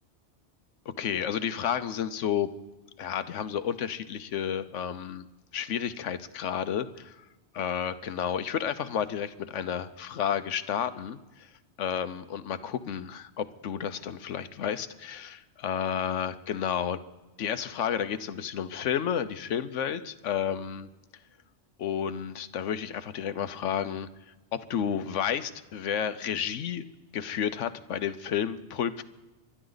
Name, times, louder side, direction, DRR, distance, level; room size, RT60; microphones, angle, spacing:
voice 1, 0.9-2.5 3.0-5.3 5.5-7.2 7.5-11.5 11.8-17.0 17.4-20.9 21.8-24.1 24.5-26.8 27.1-29.0, left 8 dB, 85° left, 13 dB, 1.1 m, -31 dB
25.5 x 12.5 x 4.0 m, 1.1 s
omnidirectional pair, 1.2 m